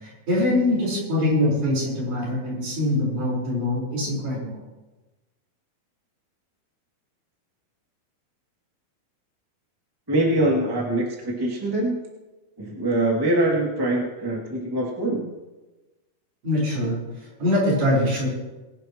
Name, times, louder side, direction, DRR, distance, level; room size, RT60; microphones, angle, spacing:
voice 1, 0.0-4.6 16.4-18.3, left 1 dB, 55° right, -4 dB, 6.1 m, -23 dB
voice 2, 10.1-12.0 12.6-15.3, right 1 dB, 10° right, -3 dB, 1.7 m, -23 dB
23.5 x 11.0 x 3.1 m, 1.1 s
omnidirectional pair, 4.4 m